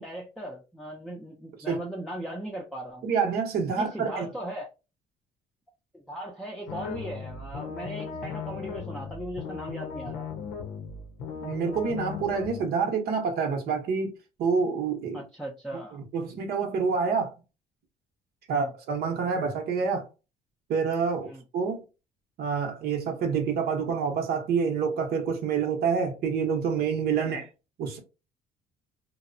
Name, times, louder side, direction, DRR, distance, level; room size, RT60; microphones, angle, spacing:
voice 1, 0.0-3.1 3.7-4.7 5.9-10.3 15.1-16.0 18.5-18.7 21.2-21.4 27.2-27.4, right 1 dB, ahead, 0.5 m, -38 dB
voice 2, 3.0-4.3 11.4-14.1 14.4-15.2 15.9-17.3 18.5-20.1 20.7-21.8 22.4-27.5 27.8-28.0, right 5 dB, 65° right, 0.8 m, -27 dB
sound 1, 6.7-12.6, left 6 dB, 80° left, 0.6 m, -37 dB
2.7 x 2.0 x 2.5 m
cardioid pair, 110°, 17 cm